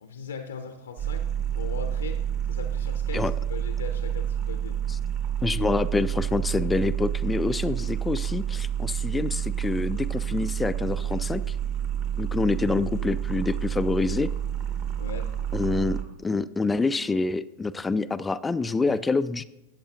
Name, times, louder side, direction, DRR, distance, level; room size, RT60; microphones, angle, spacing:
voice 1, 0.0-2.2 2.5-4.8 15.0-15.3 18.6-19.0, left 6 dB, 70° left, 8 dB, 0.7 m, -39 dB
sound 1, 1.0-16.0, right 9 dB, 40° right, 1.5 m, -29 dB
voice 2, 5.4-11.6 12.2-14.3 15.5-19.4, left 3 dB, 10° left, 13 dB, 0.3 m, -26 dB
13.5 x 8.6 x 2.9 m, 0.93 s
figure-of-eight pair, 90°, 0 cm